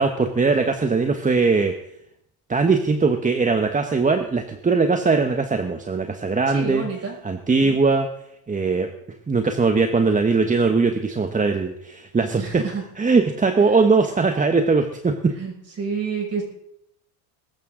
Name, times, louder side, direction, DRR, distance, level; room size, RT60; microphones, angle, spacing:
voice 1, 0.0-1.7 2.5-6.8 7.2-8.1 8.5-8.9 9.3-12.4 13.0-15.3, right 4 dB, 15° right, 6 dB, 1.2 m, -20 dB
voice 2, 6.5-7.2 12.4-12.8 13.6-13.8 15.4-16.4, right 5 dB, 30° right, 0 dB, 6.0 m, -29 dB
21.5 x 12.0 x 3.8 m, 0.76 s
supercardioid pair, 110°, 46 cm